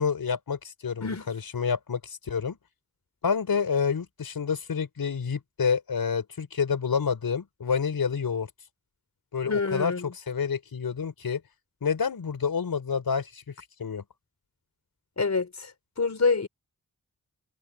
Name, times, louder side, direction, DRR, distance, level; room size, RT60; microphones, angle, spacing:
voice 1, 0.0-2.6 3.2-8.5 9.3-11.4 11.8-13.4 13.8-14.0, left 6 dB, 80° left, 4.9 m, -28 dB
voice 2, 9.5-10.1 15.2-15.7 16.0-16.5, left 4 dB, 50° left, 4.0 m, -26 dB
wide cardioid pair, 70°, 35 cm